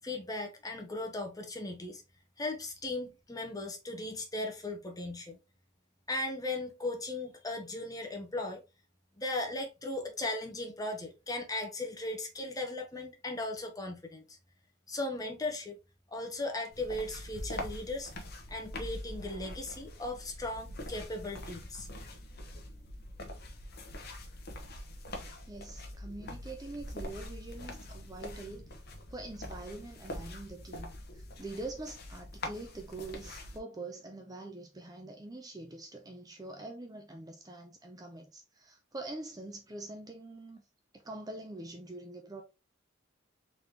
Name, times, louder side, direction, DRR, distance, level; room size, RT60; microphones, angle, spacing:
voice 1, 0.0-2.0 2.4-5.4 6.1-8.6 9.2-14.4 14.9-15.8 16.1-18.1 18.5-21.9, left 2 dB, 15° left, 0.9 m, -37 dB
sound 1, 16.7-33.6, left 1 dB, 50° left, 0.9 m, -44 dB
voice 2, 25.5-28.7 29.1-40.6 40.9-42.4, right 2 dB, 20° right, 0.5 m, -44 dB
4.1 x 3.5 x 2.8 m
head